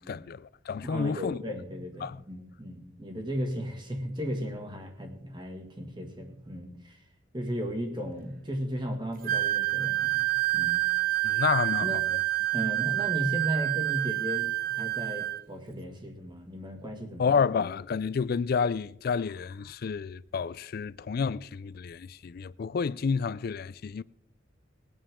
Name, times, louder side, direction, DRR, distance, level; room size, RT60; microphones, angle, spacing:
voice 1, 0.1-1.4 2.0-2.2 11.2-11.9 17.2-24.0, left 5 dB, 50° left, 0.3 m, -30 dB
voice 2, 0.8-7.0 7.3-10.9 11.8-12.0 12.5-17.4, equal, 25° right, 1.9 m, -35 dB
Wind instrument woodwind instrument, 9.2-15.4, right 17 dB, 45° right, 0.6 m, -28 dB
20.5 x 8.9 x 3.7 m
head